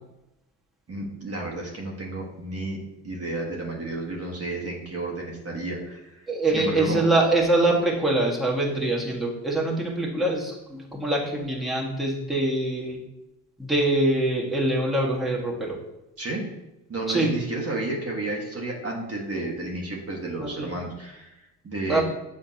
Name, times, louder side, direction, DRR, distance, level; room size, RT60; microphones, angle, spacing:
voice 1, 0.9-2.8 3.0-7.0 16.2-16.5 16.9-22.0, right 2 dB, 35° right, -1 dB, 1.6 m, -32 dB
voice 2, 6.3-13.0 13.6-15.8 17.1-17.3 20.4-20.7 21.9-22.0, right 2 dB, ahead, -4 dB, 1.7 m, -24 dB
7.7 x 4.3 x 2.9 m, 0.93 s
hypercardioid pair, 55°, 44 cm